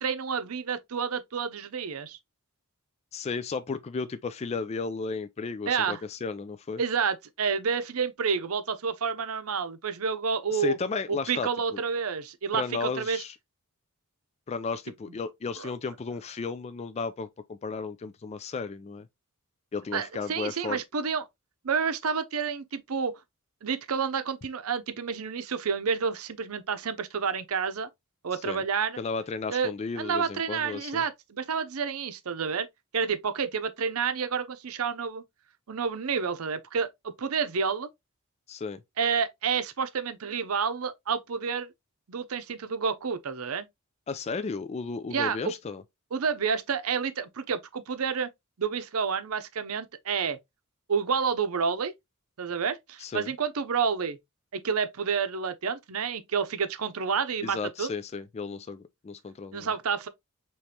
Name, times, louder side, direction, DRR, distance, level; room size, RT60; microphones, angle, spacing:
voice 1, 0.0-2.2 5.7-6.0 6.8-10.8 11.1-13.2 15.6-15.7 19.9-21.3 21.6-23.1 23.6-27.9 28.2-29.0 29.5-32.7 32.9-35.2 35.7-37.9 39.0-41.7 42.1-43.7 45.1-45.5 46.1-48.3 48.6-50.4 50.9-51.9 52.4-54.2 54.5-57.9 59.5-60.1, right 6 dB, 85° right, 0.6 m, -29 dB
voice 2, 3.1-6.8 10.5-11.8 12.5-13.4 14.5-19.1 19.7-20.8 28.4-28.6 29.0-31.0 38.5-38.8 44.1-45.8 53.0-53.3 57.4-59.7, left 4 dB, 30° left, 0.3 m, -34 dB
5.0 x 3.1 x 2.8 m
head